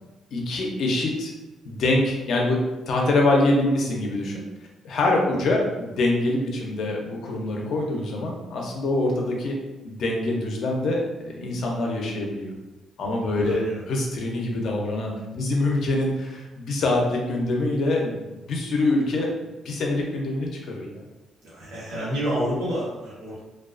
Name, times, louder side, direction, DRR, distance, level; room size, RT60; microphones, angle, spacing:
voice 1, 0.3-1.3 1.6-2.6 2.9-4.4 4.8-9.5 9.8-12.5 13.0-19.3 19.6-21.0, left 2 dB, 70° left, 0 dB, 0.5 m, -25 dB
voice 2, 13.4-13.8 21.4-23.4, equal, 90° right, -8 dB, 1.0 m, -29 dB
2.3 x 2.3 x 2.4 m, 1.1 s
cardioid pair, 90°, 0 cm